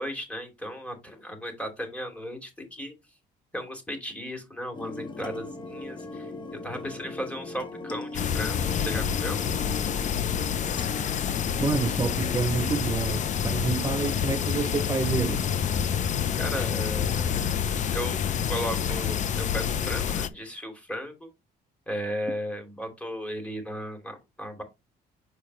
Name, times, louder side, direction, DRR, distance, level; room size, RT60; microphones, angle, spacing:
voice 1, 0.0-2.9 3.5-9.4 16.4-17.5 17.9-21.3 21.9-24.6, equal, 5° left, 2.7 m, -35 dB
sound 1, 4.7-12.3, left 2 dB, 30° left, 1.2 m, -39 dB
sound 2, 8.1-20.3, left 8 dB, 45° left, 0.7 m, -28 dB
voice 2, 11.6-15.5, right 4 dB, 20° right, 0.6 m, -28 dB
6.6 x 4.9 x 3.1 m
cardioid pair, 110°, 17 cm